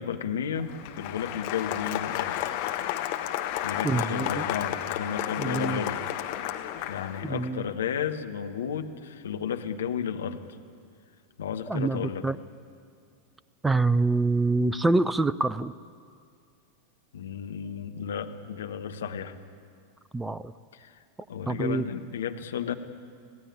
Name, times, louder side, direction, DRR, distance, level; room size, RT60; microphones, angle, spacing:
voice 1, 0.0-2.4 3.6-6.0 6.9-10.4 11.4-12.3 17.1-19.4 20.7-21.0 21.3-22.7, left 7 dB, 65° left, 6 dB, 1.3 m, -33 dB
Applause, 0.6-7.5, left 12 dB, 45° left, 1.5 m, -32 dB
voice 2, 3.8-4.4 5.4-5.8 7.2-7.6 11.7-12.4 13.6-15.7 20.1-20.5 21.5-21.8, right 3 dB, 10° right, 17 dB, 0.5 m, -26 dB
26.0 x 17.0 x 8.8 m, 2.3 s
figure-of-eight pair, 90°, 0 cm